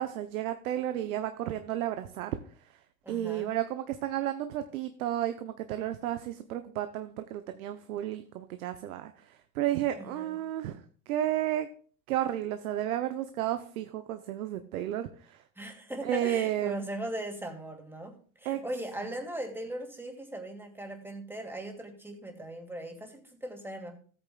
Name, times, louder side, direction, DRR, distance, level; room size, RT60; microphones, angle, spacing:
voice 1, 0.0-2.4 3.1-11.7 12.1-15.4 16.0-16.8 18.4-18.6, right 12 dB, 85° right, 9 dB, 0.8 m, -32 dB
voice 2, 3.0-3.5 10.0-10.4 15.6-23.9, right 1 dB, 5° right, 2 dB, 2.5 m, -39 dB
15.0 x 8.8 x 2.3 m, 0.42 s
hypercardioid pair, 100°, 42 cm